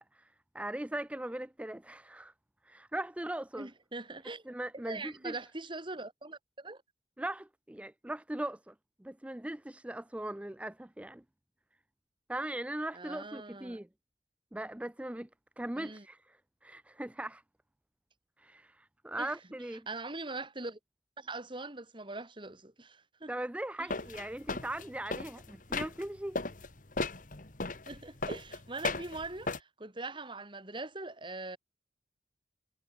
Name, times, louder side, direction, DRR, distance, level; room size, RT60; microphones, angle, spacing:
voice 1, 0.0-2.3 2.6-3.7 4.5-5.3 7.2-8.7 9.0-11.2 12.3-13.9 14.5-15.3 15.6-16.4 16.6-17.4 18.4-19.9 23.3-26.4, right 1 dB, 10° right, 0.4 m, -39 dB
voice 2, 3.6-4.5 4.9-6.8 12.9-13.8 15.8-16.1 19.2-19.4 19.9-20.8 21.2-23.3 23.8-23.9 27.9-31.6, right 3 dB, 30° right, 2.7 m, -42 dB
sound 1, 23.9-26.1 26.4-29.6, left 3 dB, 50° left, 1.9 m, -36 dB
head